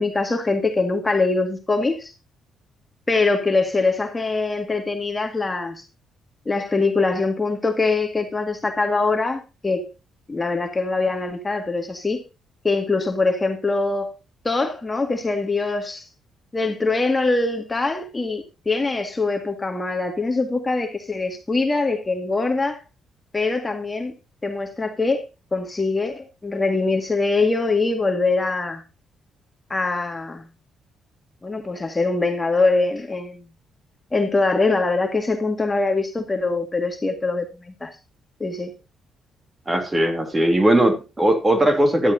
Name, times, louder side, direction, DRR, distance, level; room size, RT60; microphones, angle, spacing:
voice 1, 0.0-2.1 3.1-5.8 6.5-9.9 10.3-12.2 12.6-14.1 14.4-16.1 16.5-22.8 23.3-24.1 24.4-25.2 25.5-28.8 29.7-30.4 31.4-33.4 34.1-38.0 38.4-38.7, left 3 dB, 20° left, 1.9 m, -23 dB
voice 2, 39.7-42.1, right 1 dB, 20° right, 3.0 m, -19 dB
15.0 x 12.5 x 2.7 m
cardioid pair, 90°, 0 cm